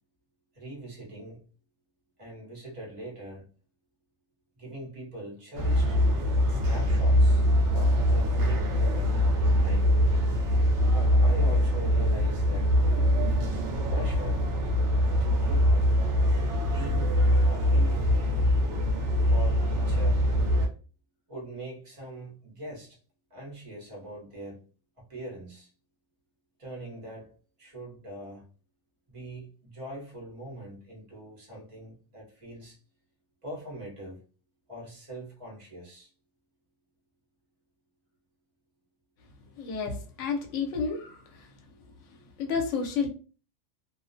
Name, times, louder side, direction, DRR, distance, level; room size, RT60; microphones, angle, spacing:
voice 1, 0.5-1.5 2.2-3.5 4.6-6.0 6.5-7.4 7.7-10.0 10.9-13.1 13.9-14.5 15.2-15.8 16.7-18.2 19.2-20.2 21.3-23.0 23.3-24.6 25.0-25.7 26.6-28.5 29.1-32.8 33.4-34.2 34.7-36.1, right 1 dB, 30° right, 0.8 m, -42 dB
sound 1, 5.5-20.7, equal, 65° right, 0.8 m, -23 dB
voice 2, 39.6-41.5 42.4-43.1, left 5 dB, 75° left, 0.9 m, -31 dB
2.4 x 2.0 x 2.5 m
omnidirectional pair, 1.4 m